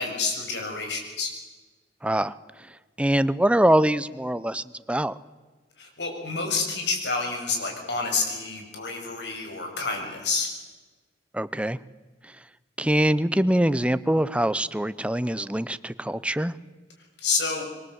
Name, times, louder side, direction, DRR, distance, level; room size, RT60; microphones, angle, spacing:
voice 1, 0.0-1.3 5.8-10.5 17.2-17.7, left 4 dB, 75° left, 3 dB, 7.0 m, -28 dB
voice 2, 2.0-2.3 3.0-5.1 11.3-11.8 12.8-16.5, right 1 dB, 5° right, 15 dB, 0.7 m, -23 dB
26.5 x 23.0 x 8.1 m, 1.3 s
head